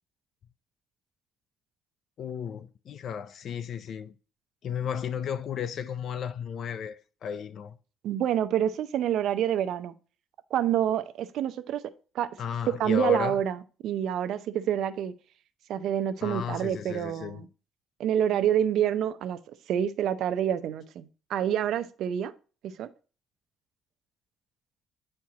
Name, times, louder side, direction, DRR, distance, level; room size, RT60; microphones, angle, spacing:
voice 1, 2.2-4.2 4.6-7.8 12.4-13.4 16.2-17.4, left 7 dB, 60° left, 0.5 m, -34 dB
voice 2, 8.0-9.9 10.5-11.8 12.1-12.3 12.8-15.1 15.7-17.5 18.0-19.4 19.7-22.3 22.8-22.9, right 10 dB, 75° right, 0.6 m, -27 dB
9.5 x 4.5 x 2.8 m
cardioid pair, 95°, 0 cm